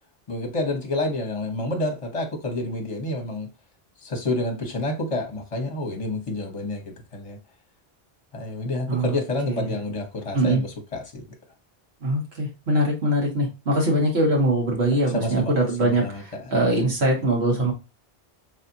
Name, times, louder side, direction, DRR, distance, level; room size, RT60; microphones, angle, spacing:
voice 1, 0.3-3.5 4.0-7.4 8.3-11.3 15.1-16.5, left 2 dB, 35° left, 1.0 m, -29 dB
voice 2, 12.0-16.0 16.5-17.7, right 1 dB, 85° right, 1.8 m, -22 dB
4.1 x 3.4 x 2.6 m
omnidirectional pair, 1.0 m